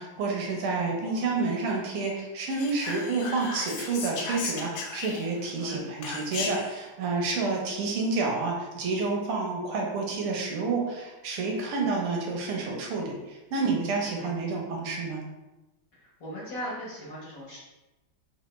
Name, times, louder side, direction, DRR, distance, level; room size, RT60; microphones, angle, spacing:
voice 1, 0.0-15.2, right 3 dB, 85° right, 0 dB, 1.7 m, -29 dB
voice 2, 1.0-1.5 5.6-5.8 14.2-14.3 15.9-17.6, equal, 50° left, -6 dB, 1.1 m, -39 dB
Whispering, 2.5-5.5 6.0-6.8, left 4 dB, 75° left, 1.3 m, -35 dB
3.5 x 3.3 x 3.0 m, 1.1 s
omnidirectional pair, 2.3 m